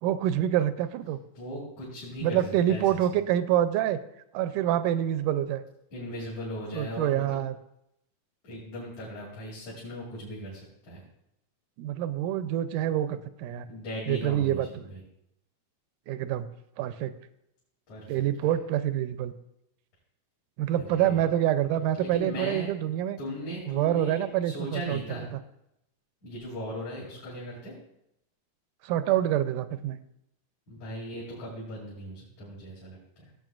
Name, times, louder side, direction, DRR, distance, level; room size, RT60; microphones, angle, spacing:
voice 1, 0.0-1.2 2.2-4.0 4.3-5.6 6.7-7.5 11.8-13.7 14.1-14.7 16.1-16.5 16.8-17.1 18.1-19.3 20.6-23.2 23.7-25.2 28.8-30.0, right 11 dB, 85° right, 12 dB, 2.1 m, -26 dB
voice 2, 1.3-3.3 5.9-7.4 8.4-11.0 13.7-15.0 17.9-18.1 18.4-18.5 20.7-21.2 22.0-22.7 23.2-25.3 26.2-27.7 30.7-33.3, equal, 60° left, -8 dB, 4.0 m, -38 dB
16.5 x 7.7 x 2.4 m, 0.80 s
omnidirectional pair, 3.6 m